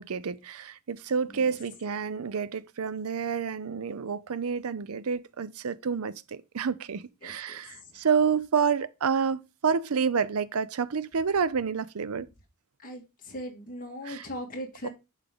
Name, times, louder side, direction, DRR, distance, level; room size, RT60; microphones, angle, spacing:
voice 1, 0.0-12.3 14.0-14.3 14.8-14.9, right 6 dB, 70° right, 0.5 m, -29 dB
voice 2, 12.8-14.9, equal, 40° left, 1.9 m, -39 dB
10.0 x 3.8 x 3.5 m
head